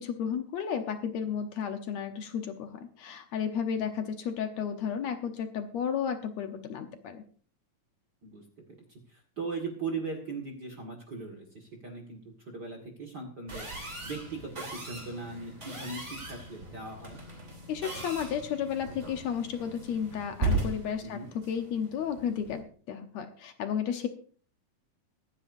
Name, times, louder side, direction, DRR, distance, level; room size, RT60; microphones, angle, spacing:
voice 1, 0.0-7.2 17.7-21.2 21.5-24.1, left 8 dB, 65° left, 7 dB, 1.9 m, -33 dB
voice 2, 9.1-13.7 14.0-17.2 21.0-21.3, right 4 dB, 35° right, 1 dB, 1.9 m, -39 dB
sound 1, 13.5-22.6, right 2 dB, 20° right, 3.3 m, -37 dB
24.0 x 9.9 x 2.6 m, 0.44 s
omnidirectional pair, 3.9 m